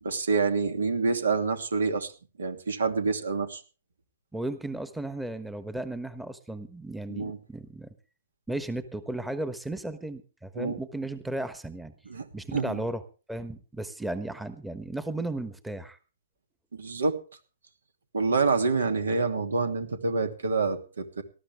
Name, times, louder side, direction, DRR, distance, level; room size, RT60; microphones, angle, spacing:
voice 1, 0.0-2.1 2.4-3.6 7.1-7.4 10.6-10.8 12.1-12.3 12.5-12.8 16.7-17.2 18.1-21.2, right 4 dB, 80° right, 8 dB, 2.6 m, -27 dB
voice 2, 4.3-7.9 8.5-11.9 12.3-13.0 13.3-16.0, right 2 dB, 5° right, 12 dB, 1.2 m, -35 dB
19.0 x 13.5 x 3.5 m, 0.35 s
hypercardioid pair, 130°, 0 cm